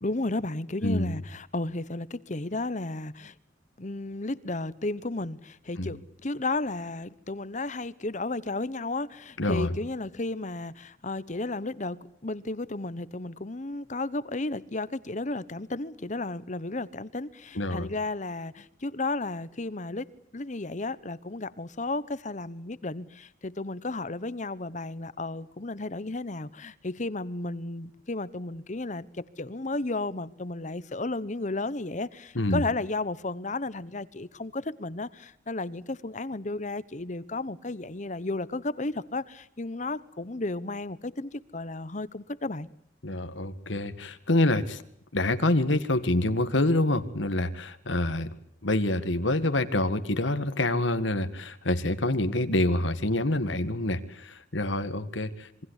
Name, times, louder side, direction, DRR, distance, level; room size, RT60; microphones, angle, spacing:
voice 1, 0.0-3.3 3.8-20.1 20.3-42.7, left 2 dB, 40° left, 1.1 m, -33 dB
voice 2, 9.4-9.7 17.6-17.9 32.4-32.6 43.0-44.8 45.1-48.3 48.6-55.6, left 1 dB, 85° left, 1.9 m, -26 dB
27.0 x 23.5 x 8.2 m
head